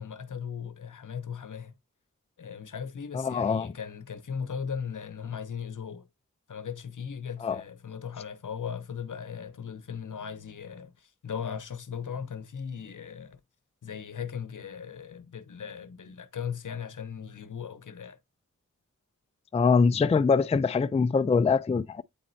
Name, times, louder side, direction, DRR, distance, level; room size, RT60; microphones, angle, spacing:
voice 1, 0.0-1.7 2.4-6.1 6.5-13.4 13.8-18.2, left 7 dB, 70° left, 0.8 m, -38 dB
voice 2, 3.1-3.7 7.4-7.6 19.5-22.0, left 5 dB, 20° left, 0.3 m, -23 dB
8.5 x 4.1 x 2.6 m
cardioid pair, 45°, 32 cm